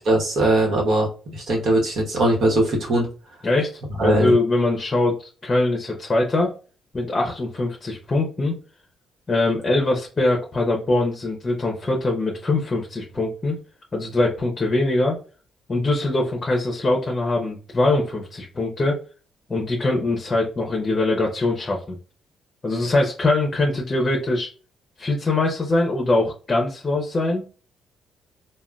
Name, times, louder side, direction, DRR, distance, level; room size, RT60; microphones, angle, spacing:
voice 1, 0.1-3.1 4.0-4.3, right 1 dB, 65° right, 0 dB, 1.1 m, -20 dB
voice 2, 3.4-6.5 6.9-8.5 9.3-13.6 13.9-15.2 15.7-19.0 19.5-22.0 22.6-24.5 25.0-27.5, left 2 dB, 30° left, 0 dB, 0.7 m, -22 dB
3.6 x 2.2 x 2.3 m, 0.36 s
cardioid pair, 90°, 0 cm